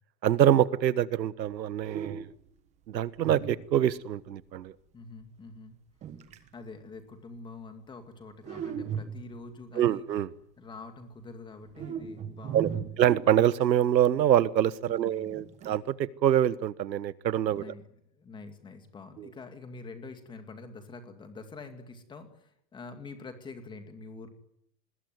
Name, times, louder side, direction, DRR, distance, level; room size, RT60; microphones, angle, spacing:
voice 1, 0.2-2.3 2.9-4.7 9.8-10.3 12.5-12.7 13.0-17.6 19.2-19.3, right 11 dB, 90° right, 17 dB, 1.4 m, -25 dB
sound 1, 1.8-2.5 3.2-4.1 6.0-6.5 8.4-9.5 11.7-13.8 15.3-15.8, right 8 dB, 15° right, 1.2 m, -38 dB
voice 2, 4.9-5.8 6.5-10.1 10.6-12.9 14.8-15.6 17.5-17.8 18.1-24.3, left 3 dB, 10° left, 7 dB, 2.3 m, -46 dB
25.5 x 21.0 x 9.5 m, 0.74 s
hypercardioid pair, 165°, 50 cm